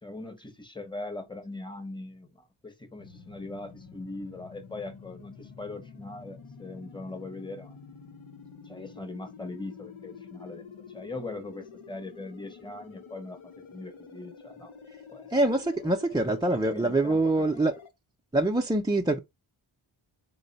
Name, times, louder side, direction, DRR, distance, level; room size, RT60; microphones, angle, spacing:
voice 1, 0.0-7.8 8.6-13.4 13.7-14.7 15.1-15.3 16.1-17.5, left 2 dB, 10° left, 0.9 m, -41 dB
sound 1, 3.0-17.9, left 5 dB, 75° left, 0.8 m, -48 dB
voice 2, 15.3-17.7 18.3-19.2, right 2 dB, 10° right, 0.4 m, -25 dB
3.8 x 2.1 x 3.9 m
wide cardioid pair, 65°, 49 cm